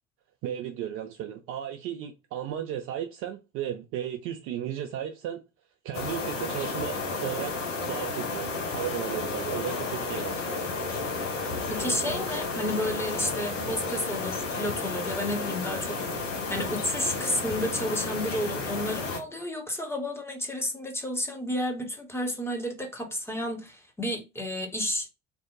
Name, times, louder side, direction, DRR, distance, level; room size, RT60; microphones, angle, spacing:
voice 1, 0.4-5.4 5.8-10.3, right 10 dB, 40° right, 0.4 m, -35 dB
sound 1, 5.9-19.2, left 3 dB, 75° left, 0.7 m, -32 dB
voice 2, 11.7-25.1, left 1 dB, 5° left, 0.7 m, -31 dB
2.6 x 2.1 x 3.6 m
figure-of-eight pair, 60°, 38 cm